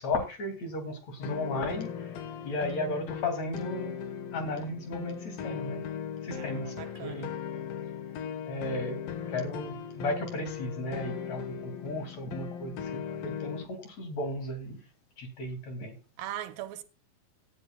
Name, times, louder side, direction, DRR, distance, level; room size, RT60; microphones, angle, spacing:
voice 1, 0.0-4.0 4.3-5.8 6.2-6.7 7.0-7.3 8.5-9.0 9.3-14.8 15.2-16.0, left 2 dB, 50° left, 3.7 m, -35 dB
sound 1, 1.2-13.7, left 8 dB, 80° left, 3.2 m, -38 dB
voice 2, 6.3-7.3 16.2-16.8, right 12 dB, 85° right, 2.7 m, -40 dB
17.5 x 11.0 x 2.3 m
omnidirectional pair, 4.1 m